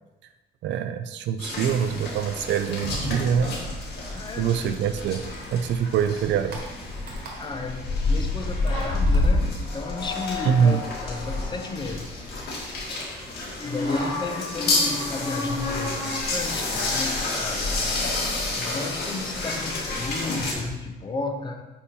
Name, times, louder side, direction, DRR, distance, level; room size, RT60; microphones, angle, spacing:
voice 1, 0.6-3.5 4.4-5.2 5.5-6.6 10.4-10.8, right 7 dB, 75° right, 10 dB, 0.4 m, -24 dB
sound 1, 1.4-20.5, left 2 dB, 60° left, 2.1 m, -29 dB
sound 2, 2.9-5.1 5.3-7.8 8.1-9.4, right 2 dB, 60° right, 1.5 m, -45 dB
voice 2, 4.1-4.5 4.8-4.9 7.4-12.3 13.6-18.0 18.6-21.6, left 3 dB, 25° left, 5 dB, 0.6 m, -33 dB
sound 3, 8.7-12.7 13.5-20.7, left 3 dB, 40° left, 2.1 m, -35 dB
8.7 x 2.9 x 5.3 m, 1.1 s
cardioid pair, 170°, 19 cm